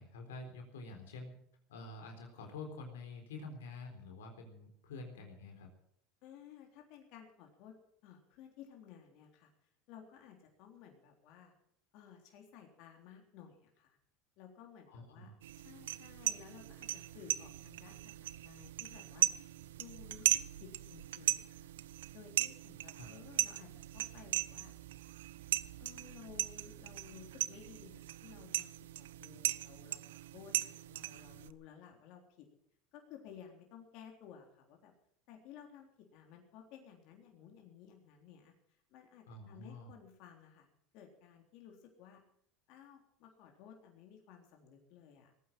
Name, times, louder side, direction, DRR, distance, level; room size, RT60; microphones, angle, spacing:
voice 1, 0.0-1.4 1.7-5.7 14.9-15.4 23.0-23.1 39.3-39.9, left 3 dB, 85° left, 3 dB, 3.9 m, -48 dB
voice 2, 6.2-7.7 8.0-9.5 9.9-11.5 11.9-14.0 14.4-21.7 22.1-24.8 25.8-28.7 29.0-30.0 30.3-32.5 32.9-34.9 35.3-40.7 40.9-42.2 42.7-45.3, left 8 dB, 60° left, 2 dB, 3.6 m, -56 dB
sound 1, 15.4-31.5, right 14 dB, 85° right, 0.7 m, -38 dB
18.5 x 9.4 x 7.5 m, 0.68 s
hypercardioid pair, 95°, 0 cm